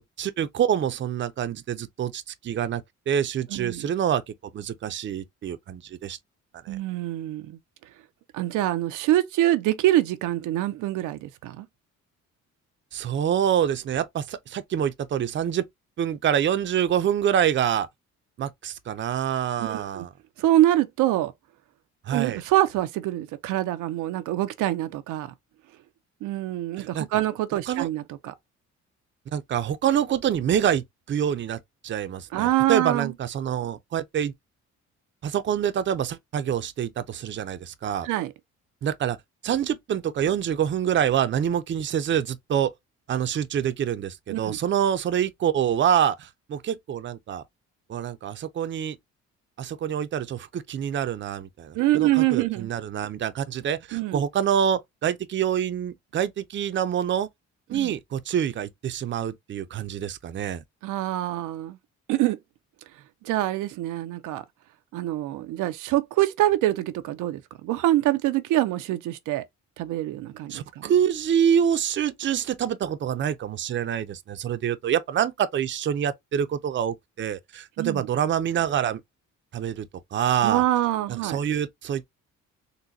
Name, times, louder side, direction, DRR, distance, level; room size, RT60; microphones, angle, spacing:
voice 1, 0.0-4.2 4.5-6.2 6.6-6.8 12.9-15.6 16.0-17.9 18.4-20.1 22.1-22.4 26.8-27.1 27.7-27.9 29.3-34.3 35.2-38.1 38.8-39.2 39.4-42.7 43.1-47.4 47.9-49.0 49.6-57.3 57.7-60.6 70.5-79.0 79.5-80.6 81.1-82.0, right 9 dB, 40° right, 0.5 m, -26 dB
voice 2, 3.5-3.9 6.7-7.6 8.3-11.7 19.6-20.1 20.4-21.3 22.1-25.3 26.2-28.3 32.3-33.1 38.0-38.3 44.3-44.6 51.7-52.7 53.9-54.2 57.7-57.9 60.8-61.8 62.1-62.4 63.2-64.4 64.9-69.4 69.8-70.9 77.8-78.1 80.4-81.4, right 15 dB, 90° right, 0.5 m, -25 dB
3.9 x 2.1 x 2.6 m
cardioid pair, 90°, 30 cm